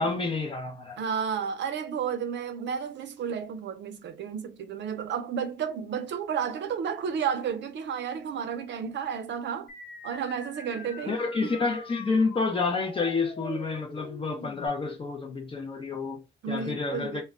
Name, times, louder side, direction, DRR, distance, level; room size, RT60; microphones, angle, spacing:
voice 1, 0.0-1.0 11.1-17.2, left 4 dB, 30° left, 0.5 m, -29 dB
voice 2, 1.0-9.7 10.0-11.5 16.4-17.2, right 7 dB, 70° right, 0.5 m, -32 dB
sound 1, 9.7-14.7, left 4 dB, 70° left, 0.8 m, -44 dB
2.1 x 2.1 x 3.5 m
wide cardioid pair, 175°, 19 cm